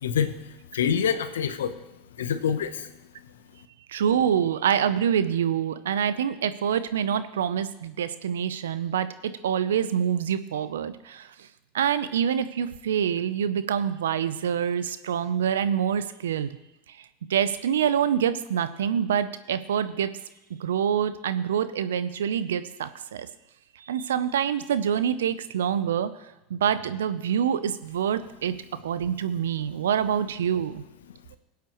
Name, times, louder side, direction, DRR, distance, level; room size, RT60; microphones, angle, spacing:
voice 1, 0.0-1.8 2.2-2.9, left 7 dB, 80° left, 11 dB, 0.9 m, -27 dB
voice 2, 3.9-11.3 11.7-16.5 17.3-20.1 20.5-23.3 23.8-26.1 26.5-28.6 28.8-30.8, right 8 dB, 80° right, 13 dB, 0.6 m, -26 dB
21.0 x 8.3 x 3.1 m, 0.97 s
hypercardioid pair, 85°, 0 cm